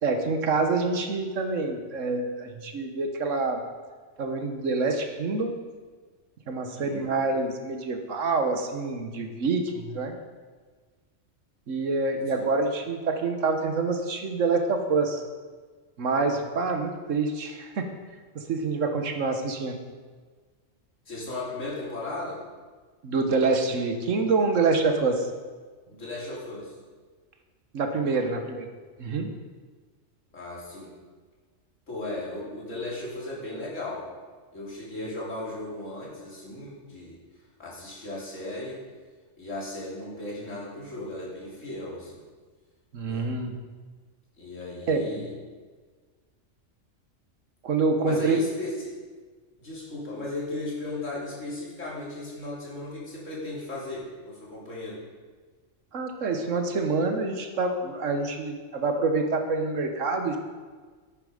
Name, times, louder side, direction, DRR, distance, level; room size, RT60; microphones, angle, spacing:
voice 1, 0.0-3.6 4.2-5.5 6.5-10.2 11.7-15.2 16.0-17.9 18.3-19.8 23.0-25.3 27.7-28.7 29.0-29.3 42.9-43.6 44.9-45.1 47.6-48.4 55.9-60.4, right 3 dB, 90° right, 5 dB, 1.5 m, -26 dB
voice 2, 6.7-7.1 12.3-12.4 21.1-22.4 25.9-26.7 30.3-30.9 31.9-34.1 34.5-37.2 37.6-38.8 39.4-42.2 43.0-43.2 44.4-45.3 48.0-48.9 49.6-55.0, left 2 dB, 85° left, -5 dB, 3.4 m, -36 dB
10.5 x 9.2 x 4.9 m, 1.5 s
omnidirectional pair, 1.3 m